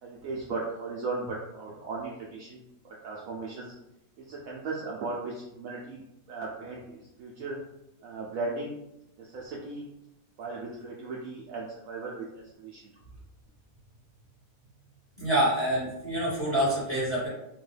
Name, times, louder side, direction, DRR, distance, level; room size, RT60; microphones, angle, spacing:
voice 1, 0.0-3.7 4.2-6.0 6.3-7.6 8.0-8.8 9.2-9.8 10.4-12.8, right 3 dB, 85° right, -3 dB, 0.7 m, -37 dB
voice 2, 15.2-17.3, right 1 dB, 10° left, -8 dB, 0.9 m, -26 dB
3.5 x 2.2 x 3.2 m, 0.88 s
omnidirectional pair, 2.0 m